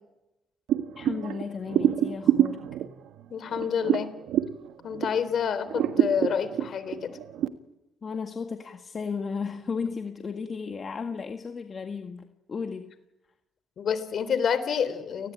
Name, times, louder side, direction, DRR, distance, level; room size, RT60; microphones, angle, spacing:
sound 1, 0.7-5.3 5.7-7.5, right 11 dB, 85° right, 1.4 m, -26 dB
voice 1, 1.0-2.7 8.0-12.9, left 5 dB, 40° left, 5 dB, 1.8 m, -34 dB
voice 2, 3.3-4.1 4.8-7.2 13.8-15.3, left 7 dB, 60° left, 13 dB, 3.6 m, -28 dB
30.0 x 19.5 x 9.0 m, 0.96 s
cardioid pair, 90°, 0 cm